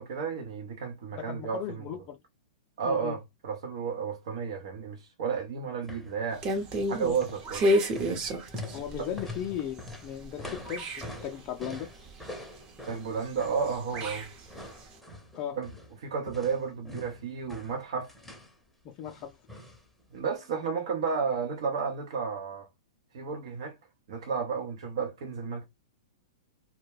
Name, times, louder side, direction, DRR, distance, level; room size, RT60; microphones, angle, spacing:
voice 1, 0.0-1.8 2.8-6.6 6.9-7.7 9.0-9.1 12.9-14.3 15.6-15.7 16.0-18.1 20.1-22.7 23.1-23.8 24.1-25.7, right 6 dB, 65° right, 0.6 m, -32 dB
voice 2, 1.1-2.2 2.8-3.2 8.7-11.9 15.3-15.6 18.8-19.4, left 10 dB, 35° left, 0.4 m, -37 dB
sound 1, 5.8-6.2 6.4-6.8 7.0-16.0 16.3-18.6 19.1-19.9 20.1-20.2, left 1 dB, ahead, 0.7 m, -44 dB
sound 2, 6.3-10.3 10.7-12.2 13.1-14.8, equal, 35° right, 0.8 m, -30 dB
2.2 x 2.1 x 3.2 m
hypercardioid pair, 125°, 3 cm